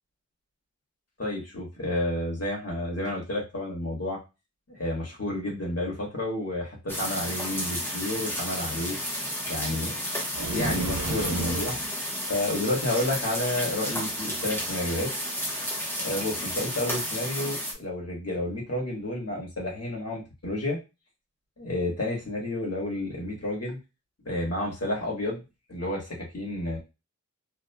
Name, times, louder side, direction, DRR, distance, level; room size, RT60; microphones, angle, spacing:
voice 1, 1.2-4.2 4.7-9.0 9.5-10.0 10.5-11.7 12.3-15.1 16.0-20.8 21.6-23.8 24.2-25.4 25.7-26.8, left 1 dB, 55° left, -4 dB, 1.3 m, -30 dB
sound 1, 6.9-17.7, equal, 5° left, 0.9 m, -32 dB
sound 2, 10.3-11.9, right 2 dB, 90° right, 0.7 m, -31 dB
2.6 x 2.4 x 2.2 m, 0.26 s
wide cardioid pair, 45°, 30 cm